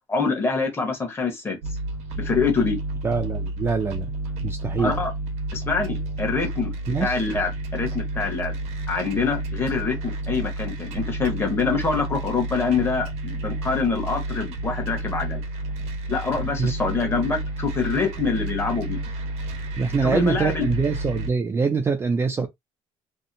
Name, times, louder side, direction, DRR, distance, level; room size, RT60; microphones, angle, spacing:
voice 1, 0.1-1.6 2.2-2.8 4.8-5.1 5.5-8.5 8.9-15.4 16.1-19.0 20.0-20.7, left 4 dB, 20° left, 0.9 m, -25 dB
sound 1, 1.6-21.3, right 2 dB, 80° right, 0.8 m, -31 dB
voice 2, 3.0-4.1 4.4-4.9 6.9-7.2 16.6-16.7 19.8-22.5, right 4 dB, 20° right, 0.4 m, -24 dB
2.7 x 2.0 x 2.5 m
cardioid pair, 130°, 11 cm